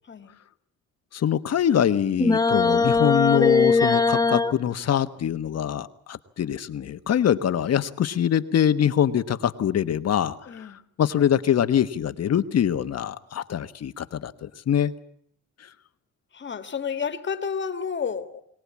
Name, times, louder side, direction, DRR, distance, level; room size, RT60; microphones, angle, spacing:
voice 1, 0.0-0.4 10.5-10.8 16.3-18.5, left 6 dB, 40° left, 1.8 m, -31 dB
voice 2, 1.1-10.7 11.0-14.9, left 9 dB, 55° left, 1.3 m, -24 dB
sound 1, 2.2-4.5, left 4 dB, 10° left, 1.0 m, -20 dB
23.0 x 18.5 x 8.5 m
cardioid pair, 90°, 30 cm